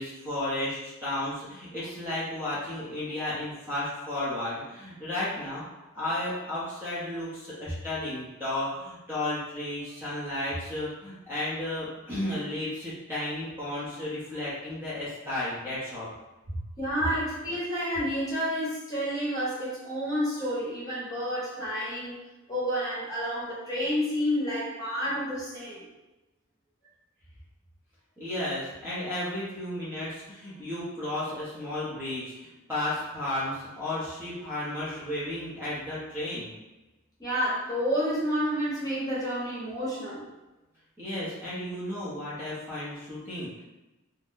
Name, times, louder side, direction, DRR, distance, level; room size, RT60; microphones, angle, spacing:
voice 1, 0.0-5.6 5.9-16.1 28.2-36.5 41.0-43.6, left 1 dB, 10° right, -10 dB, 0.8 m, -33 dB
voice 2, 16.8-22.2 22.5-25.8 34.4-34.5 37.2-40.2, equal, 15° left, -8 dB, 1.0 m, -30 dB
2.6 x 2.2 x 3.6 m, 1.0 s
head